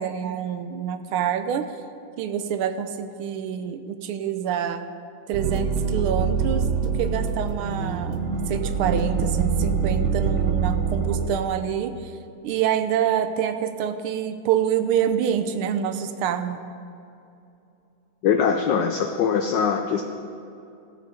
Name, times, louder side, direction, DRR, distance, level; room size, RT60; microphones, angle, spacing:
voice 1, 0.0-1.7 2.2-4.9 5.3-8.2 8.5-12.1 12.4-16.6, right 9 dB, 80° right, 10 dB, 1.5 m, -26 dB
sound 1, 5.3-11.3, right 5 dB, 60° right, 0.7 m, -24 dB
voice 2, 18.2-20.0, left 7 dB, 70° left, 5 dB, 1.2 m, -22 dB
16.0 x 6.6 x 4.9 m, 2.7 s
omnidirectional pair, 2.3 m